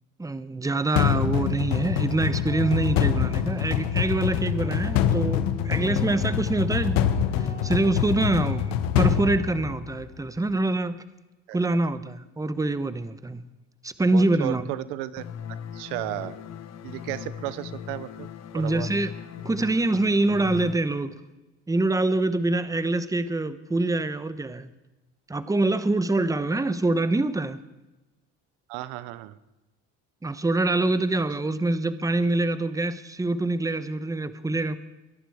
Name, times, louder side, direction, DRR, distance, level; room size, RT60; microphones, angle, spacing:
voice 1, 0.2-7.1 7.4-11.0 11.5-13.4 13.8-14.6 18.5-19.1 19.4-21.1 21.7-24.7 25.3-27.6 30.2-34.8, right 2 dB, 10° right, 13 dB, 1.0 m, -25 dB
sound 1, 1.0-10.1, left 9 dB, 85° left, 1.3 m, -25 dB
voice 2, 1.1-1.4 11.5-11.8 14.1-15.3 15.7-16.4 16.8-18.3 18.5-18.9 28.7-29.4, right 16 dB, 90° right, 16 dB, 0.8 m, -34 dB
Guitar, 2.2-10.4, left 2 dB, 15° left, 3.9 m, -44 dB
sound 2, 15.2-20.7, left 8 dB, 50° left, 1.3 m, -38 dB
23.0 x 11.0 x 4.9 m, 1.0 s
supercardioid pair, 95°, 34 cm